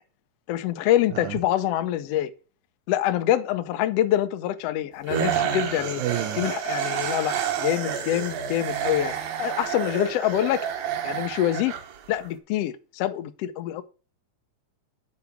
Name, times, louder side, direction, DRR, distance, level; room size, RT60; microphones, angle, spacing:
voice 1, 0.5-2.3 2.9-6.0 6.4-9.1 9.4-10.7 11.0-11.7 12.1-13.8, left 12 dB, 85° left, 1.4 m, -25 dB
sound 1, 5.1-12.3, right 8 dB, 65° right, 2.1 m, -29 dB
voice 2, 6.0-6.5, right 13 dB, 80° right, 2.0 m, -30 dB
7.8 x 4.8 x 6.9 m
omnidirectional pair, 3.7 m